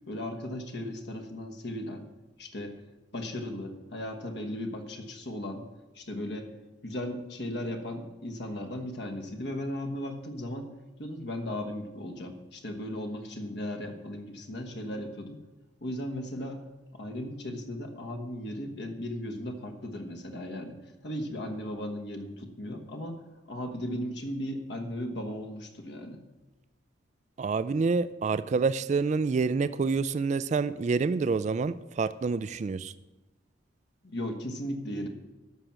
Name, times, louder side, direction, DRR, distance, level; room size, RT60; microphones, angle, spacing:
voice 1, 0.1-2.1 2.4-2.8 3.1-5.6 5.9-6.5 6.8-10.7 11.0-15.4 15.8-16.6 16.9-20.8 21.0-23.2 23.5-26.2 34.1-35.1, left 1 dB, 60° left, 5 dB, 1.3 m, -36 dB
voice 2, 27.4-32.9, right 4 dB, 40° right, 15 dB, 0.3 m, -27 dB
13.0 x 5.9 x 7.5 m, 1.1 s
head